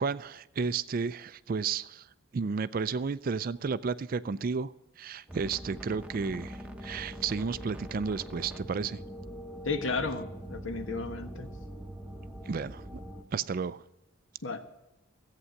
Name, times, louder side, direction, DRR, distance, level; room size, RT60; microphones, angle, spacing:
voice 1, 0.0-2.1 2.3-9.0 12.5-13.0 13.3-13.8, right 5 dB, 40° right, 16 dB, 0.4 m, -32 dB
sound 1, 5.3-13.2, equal, 5° right, 0.9 m, -43 dB
voice 2, 9.6-11.5 14.4-14.6, left 4 dB, 65° left, 8 dB, 1.2 m, -33 dB
14.0 x 8.5 x 6.5 m, 0.95 s
head